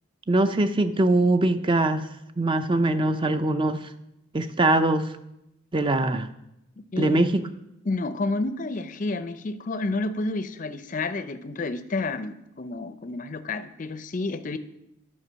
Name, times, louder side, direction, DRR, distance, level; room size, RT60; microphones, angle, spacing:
voice 1, 0.3-2.1 2.4-3.9 4.3-5.1 5.7-6.3 7.0-7.4, right 2 dB, 25° right, 10 dB, 0.4 m, -22 dB
voice 2, 6.9-7.3 7.9-14.6, left 3 dB, 35° left, 12 dB, 0.5 m, -30 dB
10.5 x 5.0 x 6.2 m, 0.86 s
head